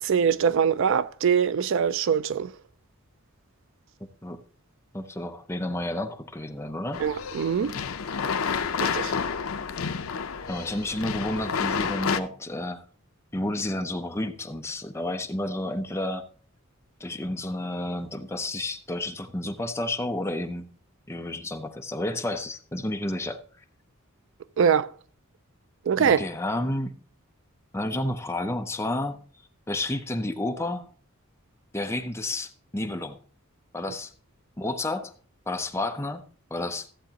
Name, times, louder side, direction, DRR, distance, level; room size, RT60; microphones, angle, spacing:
voice 1, 0.0-2.5 7.0-7.8 8.8-9.1 24.6-24.9 25.9-26.2, right 7 dB, 60° right, 0.4 m, -23 dB
voice 2, 4.9-7.0 8.5-9.1 10.5-12.8 13.3-16.3 17.0-20.7 21.1-23.4 26.0-26.9 27.7-29.2 29.7-30.9 31.7-33.2 33.7-34.1 34.6-35.1 35.5-36.2 36.5-36.9, left 1 dB, 10° left, 0.6 m, -31 dB
sound 1, 6.9-12.2, left 6 dB, 75° left, 0.6 m, -30 dB
14.5 x 7.8 x 2.9 m
head